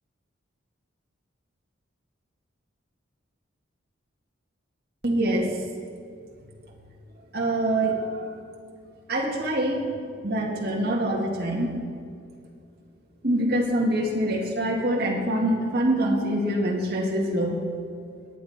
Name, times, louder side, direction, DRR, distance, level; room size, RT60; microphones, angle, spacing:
voice 1, 5.0-5.6 7.3-8.3 9.1-11.7 13.2-17.6, right 1 dB, 50° right, -3 dB, 2.4 m, -25 dB
21.0 x 8.6 x 4.5 m, 2.3 s
head